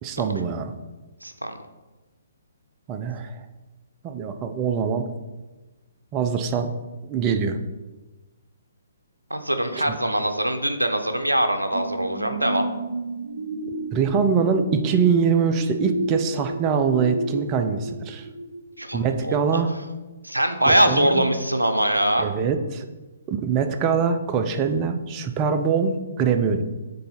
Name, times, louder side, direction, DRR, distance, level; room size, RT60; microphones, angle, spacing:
voice 1, 0.0-0.7 2.9-3.4 4.0-5.1 6.1-6.7 7.1-7.6 9.7-10.0 13.9-18.2 18.9-19.7 20.7-21.3 22.2-22.9 23.3-26.6, right 6 dB, 25° right, 8 dB, 0.5 m, -23 dB
voice 2, 1.2-1.5 9.3-12.7 18.8-19.6 20.2-22.3, right 1 dB, 90° right, 7 dB, 0.6 m, -23 dB
sound 1, 11.7-19.1 19.6-19.7, right 2 dB, 45° right, 1.2 m, -32 dB
6.7 x 3.9 x 3.9 m, 1.1 s
figure-of-eight pair, 130°, 0 cm